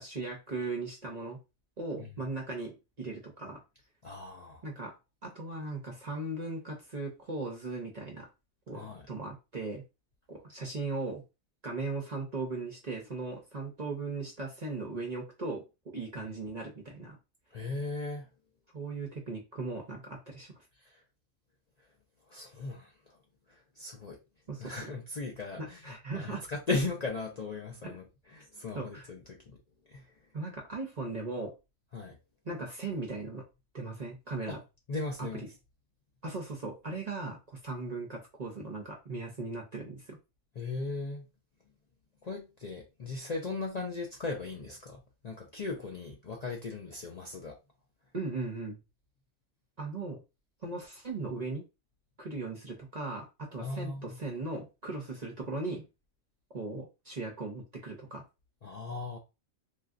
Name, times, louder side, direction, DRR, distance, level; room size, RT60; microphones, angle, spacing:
voice 1, 0.0-1.4 1.8-3.6 4.6-4.9 5.2-8.3 8.7-9.8 10.3-11.2 11.6-15.7 15.9-17.2 18.7-20.6 24.5-24.9 25.6-26.5 27.8-28.0 28.7-29.1 30.3-31.5 32.4-33.4 33.7-34.6 35.2-35.5 36.2-40.2 48.1-48.8 49.8-50.2 50.6-51.6 52.2-55.8 56.5-58.2, right 3 dB, 45° right, 0.6 m, -38 dB
voice 2, 4.0-4.6 8.7-9.1 17.5-18.3 20.8-21.0 22.3-23.2 23.5-24.2 24.6-28.0 28.3-29.6 29.9-30.1 31.9-32.2 34.5-34.6 34.9-35.5 40.6-41.3 42.2-47.6 53.6-54.2 58.6-59.2, left 3 dB, 55° left, 0.4 m, -37 dB
3.1 x 2.6 x 2.5 m
omnidirectional pair, 1.4 m